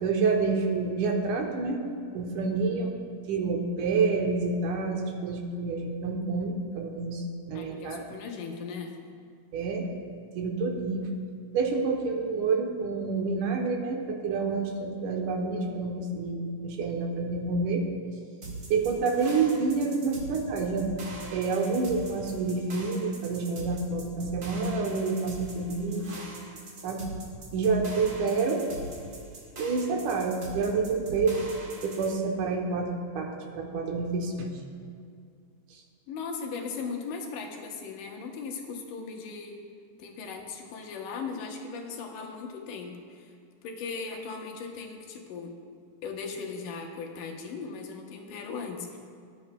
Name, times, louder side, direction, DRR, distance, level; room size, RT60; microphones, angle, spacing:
voice 1, 0.0-1.8 2.1-2.9 3.3-8.0 9.5-9.9 10.4-11.1 11.5-17.9 18.7-20.9 21.3-26.2 26.8-27.0 27.5-28.7 29.6-31.4 31.8-34.5, right 4 dB, 75° right, 2 dB, 2.3 m, -28 dB
voice 2, 7.5-8.9 36.1-39.6 40.0-43.3 43.6-45.5 46.0-49.0, left 5 dB, 80° left, 2 dB, 2.5 m, -38 dB
sound 1, 18.4-32.1, right 2 dB, 40° right, 1.5 m, -42 dB
17.0 x 10.5 x 2.2 m, 2.2 s
omnidirectional pair, 3.7 m